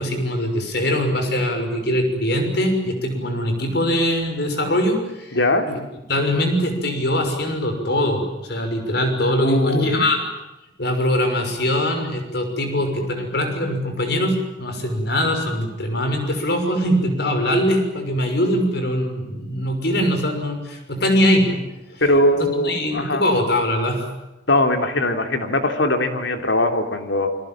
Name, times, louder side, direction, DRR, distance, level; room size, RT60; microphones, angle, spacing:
voice 1, 0.0-5.4 5.7-5.8 6.1-10.2 10.8-21.6 21.9-22.0 22.4-24.1, left 1 dB, 65° left, 5 dB, 6.2 m, -22 dB
voice 2, 5.3-5.7 9.4-10.1 22.0-23.2 24.5-27.3, left 1 dB, 80° left, 5 dB, 3.3 m, -20 dB
29.0 x 23.0 x 7.5 m, 0.97 s
head